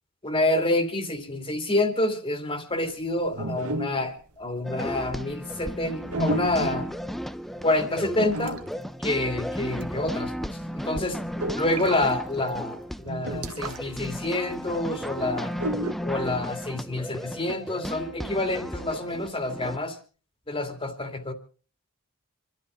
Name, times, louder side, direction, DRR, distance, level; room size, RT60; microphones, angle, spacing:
voice 1, 0.2-6.9 7.6-8.6 9.0-11.2 11.5-15.5 16.0-20.0 20.5-21.3, left 2 dB, 25° left, 7 dB, 2.6 m, -28 dB
sound 1, 3.3-4.2 4.7-5.0 6.1-7.0 8.2-8.9 9.6-9.8 10.1-10.2 10.6-12.0 12.5-12.6 13.0-14.0 14.2-14.3 15.5-15.9, right 2 dB, 85° right, 1.7 m, -32 dB
sound 2, 4.6-19.8, equal, ahead, 0.7 m, -34 dB
26.5 x 13.0 x 3.9 m, 0.39 s
head